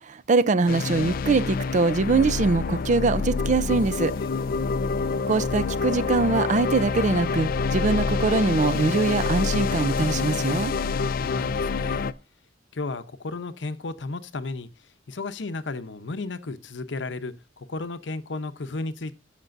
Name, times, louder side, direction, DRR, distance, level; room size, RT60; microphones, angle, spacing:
voice 1, 0.0-4.1 5.3-10.7, right 3 dB, 40° right, 0.5 m, -23 dB
sound 1, 0.7-12.1, left 4 dB, 50° left, 0.4 m, -27 dB
voice 2, 4.1-4.7 11.2-12.0 12.7-19.1, left 3 dB, 75° left, 0.8 m, -34 dB
13.5 x 6.0 x 2.6 m
head